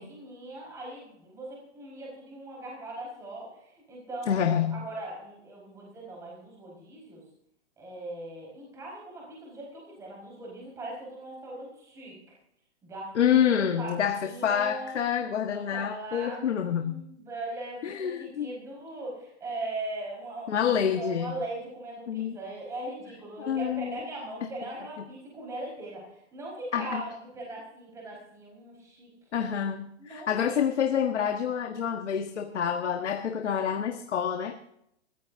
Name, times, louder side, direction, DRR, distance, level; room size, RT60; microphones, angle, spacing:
voice 1, 0.0-7.2 7.8-12.1 12.8-15.0 15.4-29.1 30.0-30.6, right 2 dB, 10° right, -3 dB, 4.9 m, -40 dB
voice 2, 4.3-4.8 13.1-17.0 17.8-18.5 20.5-21.3 22.1-22.4 23.4-24.0 26.7-27.0 29.3-34.5, left 8 dB, 75° left, 5 dB, 1.6 m, -27 dB
25.5 x 15.0 x 2.7 m, 0.75 s
hypercardioid pair, 175°, 35 cm